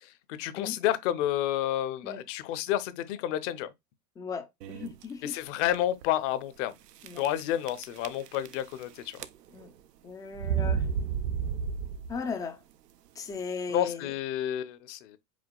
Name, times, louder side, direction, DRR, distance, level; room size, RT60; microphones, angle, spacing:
voice 1, 0.4-3.7 5.2-6.7 7.2-9.2 13.7-15.2, left 12 dB, 50° left, 0.7 m, -30 dB
voice 2, 4.2-5.4 7.0-7.2 9.5-9.7 10.0-10.9 12.1-12.6 13.2-14.2, left 5 dB, 10° left, 0.3 m, -37 dB
sound 1, 4.6-5.0 5.7-5.8 6.0-6.1 7.0-7.4 7.7-8.8 9.1-9.7 10.4-12.3, right 7 dB, 80° right, 0.6 m, -31 dB
5.0 x 3.4 x 2.2 m
hypercardioid pair, 90°, 48 cm